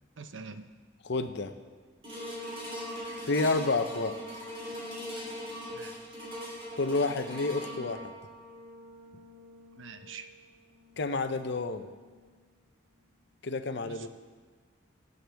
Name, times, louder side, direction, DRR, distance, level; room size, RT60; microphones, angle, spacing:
voice 1, 0.2-0.7 5.7-5.9 9.7-10.3 13.8-14.1, right 5 dB, 70° right, 9 dB, 0.7 m, -45 dB
voice 2, 1.0-1.5 3.2-4.2 6.8-8.1 11.0-11.9 13.4-14.1, left 3 dB, 60° left, 9 dB, 0.7 m, -29 dB
sound 1, 2.0-12.4 13.0-13.1, equal, 30° right, 3.4 m, -42 dB
21.5 x 7.9 x 3.5 m, 1.5 s
head